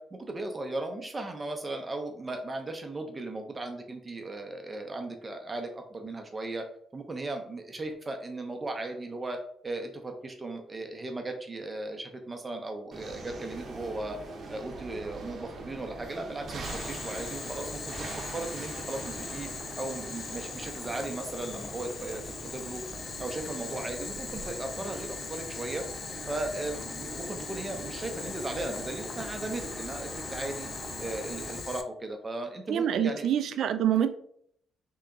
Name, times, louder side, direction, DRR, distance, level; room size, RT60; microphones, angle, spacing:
voice 1, 0.0-6.7 6.9-9.4 9.6-14.2 14.5-19.5 19.8-22.2 22.5-22.8 23.2-25.8 26.3-30.7 31.0-33.3, right 2 dB, 25° right, 0.7 m, -37 dB
sound 1, 12.9-31.6, right 3 dB, 50° right, 0.8 m, -43 dB
Boiling, 16.6-31.8, left 5 dB, 45° left, 0.4 m, -40 dB
voice 2, 32.7-34.1, right 9 dB, 70° right, 0.4 m, -26 dB
3.3 x 2.9 x 3.7 m
cardioid pair, 90°, 0 cm